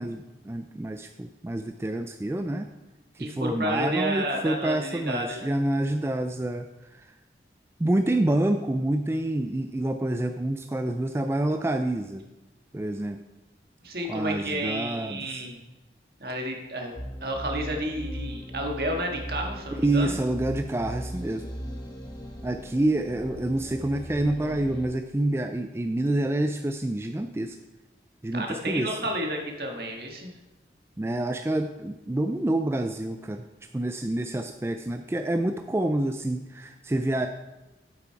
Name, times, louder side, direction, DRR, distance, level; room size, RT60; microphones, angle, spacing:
voice 1, 0.0-2.7 3.2-6.7 6.9-7.1 7.8-12.2 12.7-13.2 14.1-15.4 19.8-21.5 22.4-27.6 28.2-29.0 31.0-33.4 33.7-37.3, right 1 dB, 15° right, 7 dB, 0.3 m, -27 dB
voice 2, 3.2-5.5 13.8-15.6 16.2-16.9 17.2-20.2 28.3-30.3, right 1 dB, 60° right, 2 dB, 1.6 m, -31 dB
sound 1, 17.0-24.9, equal, 25° left, 1.5 m, -38 dB
9.3 x 7.7 x 4.6 m, 1.0 s
head